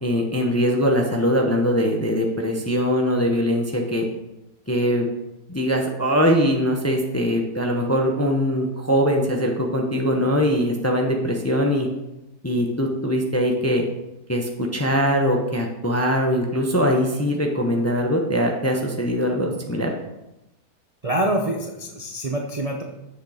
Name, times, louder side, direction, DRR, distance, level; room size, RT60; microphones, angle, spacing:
voice 1, 0.0-4.1 4.7-5.1 5.5-11.9 12.4-13.8 14.3-19.9, equal, 15° left, 1 dB, 0.7 m, -22 dB
voice 2, 21.0-22.8, right 1 dB, 35° right, 1 dB, 0.6 m, -25 dB
8.1 x 6.6 x 5.0 m, 0.94 s
omnidirectional pair, 1.8 m